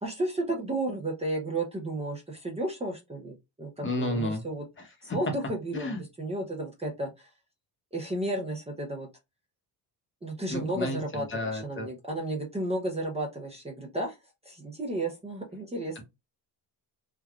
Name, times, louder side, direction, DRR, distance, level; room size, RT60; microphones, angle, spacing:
voice 1, 0.0-4.6 5.0-7.3 7.9-9.1 10.2-14.2 14.4-16.0, right 1 dB, 15° right, 0.7 m, -33 dB
voice 2, 3.8-4.4 5.7-6.0 10.5-11.0 11.3-11.9, left 1 dB, 25° left, 0.8 m, -31 dB
3.3 x 2.3 x 2.4 m
cardioid pair, 120°, 44 cm